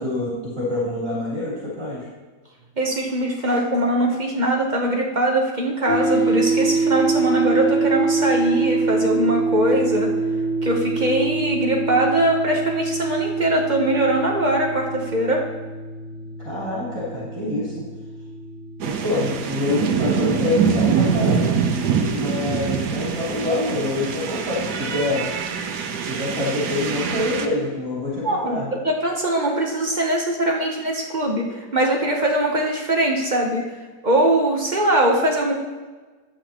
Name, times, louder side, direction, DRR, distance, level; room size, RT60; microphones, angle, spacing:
voice 1, 0.0-2.0 16.4-17.7 18.8-21.5 22.1-25.2 25.9-28.7, left 2 dB, 15° right, -10 dB, 2.9 m, -26 dB
voice 2, 2.8-10.1 10.6-15.4 28.2-33.7 34.0-35.5, right 1 dB, 35° right, 0 dB, 0.8 m, -21 dB
sound 1, 5.9-21.1, right 3 dB, 60° left, 2.5 m, -25 dB
sound 2, 18.8-27.5, right 6 dB, 70° right, 1.3 m, -24 dB
11.5 x 8.6 x 3.0 m, 1.3 s
omnidirectional pair, 1.8 m